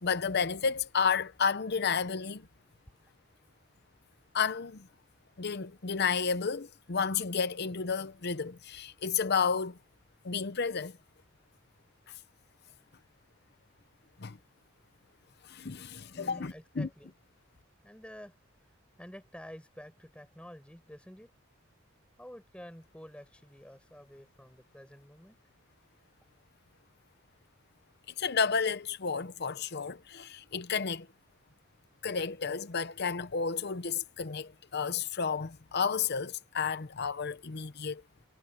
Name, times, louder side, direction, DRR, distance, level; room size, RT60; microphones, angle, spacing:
voice 1, 0.0-2.5 4.3-4.9 5.4-9.8 10.2-11.0 14.2-14.4 15.4-16.9 28.2-31.1 32.0-38.0, left 6 dB, 55° left, 0.7 m, -31 dB
voice 2, 16.1-17.1 17.8-21.3 22.2-25.4, equal, 5° left, 5.3 m, -50 dB
head